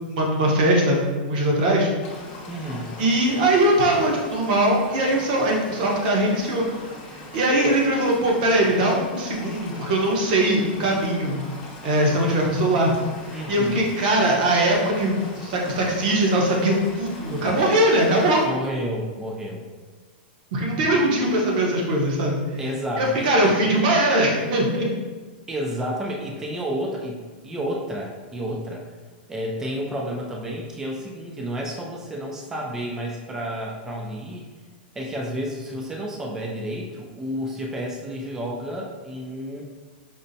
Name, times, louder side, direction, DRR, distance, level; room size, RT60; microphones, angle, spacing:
voice 1, 0.1-1.9 3.0-6.6 7.1-11.4 11.8-12.9 13.5-18.4 20.5-22.4 23.0-24.9, right 1 dB, 50° right, -1 dB, 0.9 m, -21 dB
sound 1, 2.0-18.5, left 1 dB, 30° left, 0.9 m, -40 dB
voice 2, 2.5-2.9 13.3-13.8 18.4-19.7 22.6-23.6 25.5-28.8 29.3-34.5 35.0-39.6, equal, 10° right, 0 dB, 0.3 m, -31 dB
5.4 x 2.1 x 2.6 m, 1.4 s
supercardioid pair, 160°, 6 cm